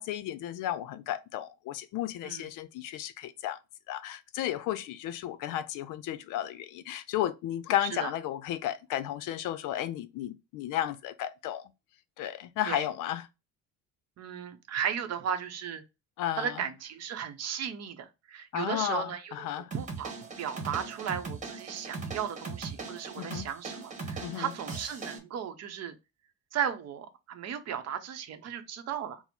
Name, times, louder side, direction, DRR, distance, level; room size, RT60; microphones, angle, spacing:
voice 1, 0.0-3.6 3.9-11.7 12.2-13.3 16.2-16.7 18.5-19.7 23.2-23.5 24.2-24.5, left 12 dB, 70° left, 0.5 m, -33 dB
voice 2, 14.2-15.8 16.3-19.5 19.7-26.0 26.5-29.2, right 8 dB, 50° right, 0.7 m, -35 dB
sound 1, 19.7-25.2, right 4 dB, 25° right, 1.1 m, -39 dB
4.3 x 2.0 x 4.3 m
cardioid pair, 135°, 33 cm